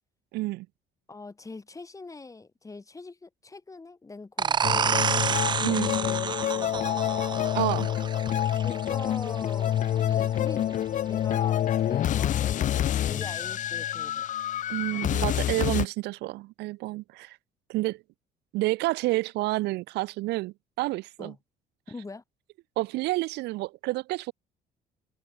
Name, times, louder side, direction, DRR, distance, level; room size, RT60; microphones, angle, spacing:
voice 1, 0.3-0.7 5.6-5.9 7.5-7.9 14.7-17.4 17.7-18.0 18.5-21.3 22.8-24.3, right 20 dB, 85° right, 0.7 m, -29 dB
voice 2, 1.1-5.2 5.6-7.0 8.6-10.8 11.1-14.2 21.2-21.4 21.9-22.2, left 3 dB, 20° left, 6.0 m, -42 dB
sound 1, 4.4-9.8, right 7 dB, 25° right, 0.4 m, -29 dB
sound 2, 4.6-15.9, left 11 dB, 50° left, 0.6 m, -27 dB
cardioid pair, 110°, 17 cm